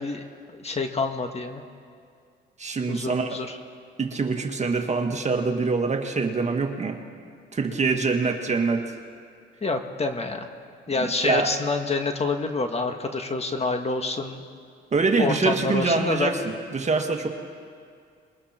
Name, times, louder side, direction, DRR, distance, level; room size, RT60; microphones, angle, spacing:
voice 1, 0.0-1.6 2.9-3.6 9.6-10.5 10.9-14.4 15.2-16.3, left 3 dB, 30° left, 5 dB, 1.7 m, -27 dB
voice 2, 2.6-3.4 4.0-7.0 7.5-9.0 11.0-11.5 14.9-16.4 16.7-17.3, right 4 dB, 35° right, 4 dB, 1.9 m, -24 dB
27.5 x 22.0 x 4.4 m, 2.2 s
cardioid pair, 90°, 20 cm